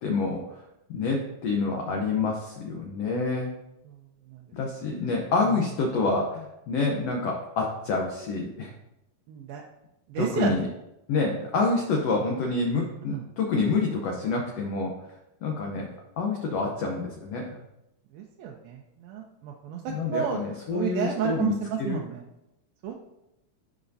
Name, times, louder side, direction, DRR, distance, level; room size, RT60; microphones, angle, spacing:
voice 1, 0.0-0.6 0.9-3.6 4.5-8.7 10.2-10.7 11.1-14.9 15.4-15.9 16.2-17.6 19.9-22.0, left 3 dB, 90° left, 0 dB, 1.4 m, -27 dB
voice 2, 9.3-9.6 10.1-10.5 13.1-13.3 18.1-20.4 20.7-22.2 22.8-22.9, right 8 dB, 90° right, 0 dB, 2.5 m, -31 dB
14.0 x 5.0 x 2.7 m, 0.89 s
omnidirectional pair, 4.1 m